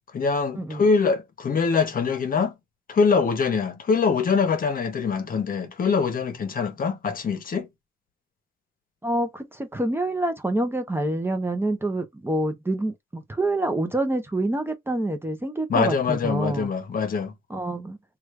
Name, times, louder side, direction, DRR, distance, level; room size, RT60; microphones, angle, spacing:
voice 1, 0.1-2.5 2.9-7.7 15.7-17.3, left 5 dB, 45° left, 0.9 m, -23 dB
voice 2, 9.0-16.7 17.5-18.0, right 1 dB, 10° right, 0.7 m, -27 dB
3.1 x 2.4 x 3.1 m
cardioid pair, 90°, 20 cm